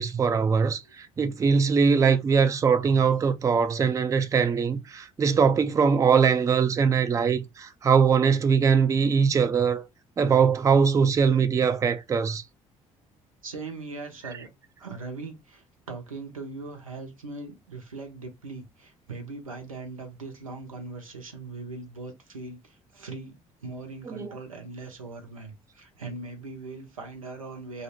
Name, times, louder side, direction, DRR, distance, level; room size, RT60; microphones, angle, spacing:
voice 1, 0.0-9.9 10.2-12.4 24.1-24.3, right 6 dB, 20° right, 0.3 m, -22 dB
voice 2, 13.4-14.5 14.8-27.8, right 3 dB, 85° right, 0.5 m, -40 dB
2.7 x 2.0 x 2.7 m
figure-of-eight pair, 50°, 17 cm